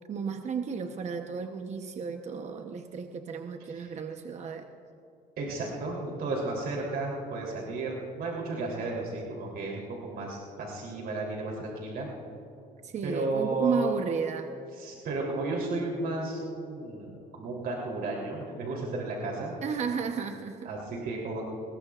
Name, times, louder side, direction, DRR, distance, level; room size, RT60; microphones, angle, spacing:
voice 1, 0.1-4.7 12.8-14.5 19.6-20.7, right 6 dB, 40° right, 5 dB, 0.9 m, -33 dB
voice 2, 5.4-12.1 13.0-13.9 14.8-19.5 20.6-21.4, right 2 dB, 65° right, -2 dB, 3.3 m, -33 dB
24.0 x 21.0 x 2.5 m, 2.8 s
cardioid pair, 110°, 17 cm